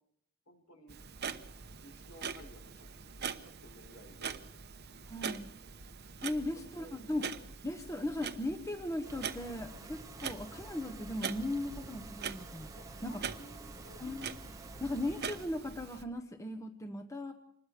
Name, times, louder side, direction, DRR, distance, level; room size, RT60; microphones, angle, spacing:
voice 1, 0.5-1.0 1.8-2.9 3.2-4.4 6.3-6.9 12.7-14.1, equal, 70° left, 4 dB, 5.8 m, -56 dB
Clock, 0.9-16.0, right 6 dB, 50° right, 0.9 m, -44 dB
voice 2, 5.1-5.5 6.2-7.3 7.6-12.7 13.0-13.2 14.0-14.3 14.8-17.3, left 1 dB, 15° left, 6 dB, 1.0 m, -37 dB
sound 1, 9.0-15.5, right 2 dB, 15° right, 0.8 m, -50 dB
26.0 x 20.5 x 5.0 m, 0.73 s
head